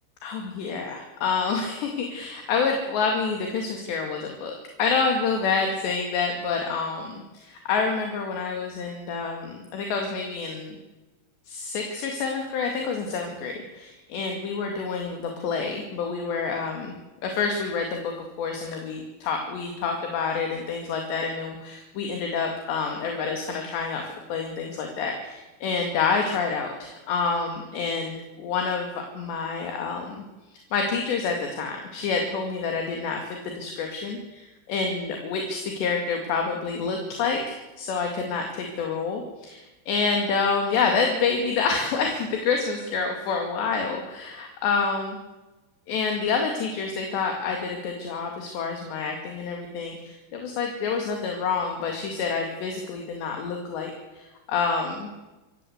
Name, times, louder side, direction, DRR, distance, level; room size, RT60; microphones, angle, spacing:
voice 1, 0.2-4.5 4.8-10.8 11.5-16.9 17.2-24.0 24.3-30.2 30.5-45.2 45.9-55.1, left 5 dB, 70° left, 3 dB, 4.4 m, -28 dB
27.0 x 15.0 x 8.1 m, 1.1 s
omnidirectional pair, 5.4 m